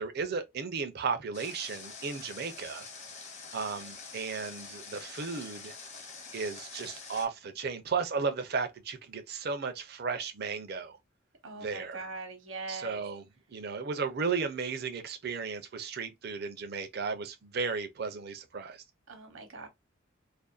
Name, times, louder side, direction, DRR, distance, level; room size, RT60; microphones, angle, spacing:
voice 1, 0.0-2.9 3.5-5.7 6.3-11.0 11.6-12.0 12.7-13.2 13.5-18.8, right 5 dB, 50° right, 0.5 m, -35 dB
Water, 1.3-7.3, left 4 dB, 35° left, 0.6 m, -46 dB
voice 2, 11.4-13.0 19.1-19.7, right 3 dB, 70° right, 0.9 m, -42 dB
2.5 x 2.1 x 2.3 m
head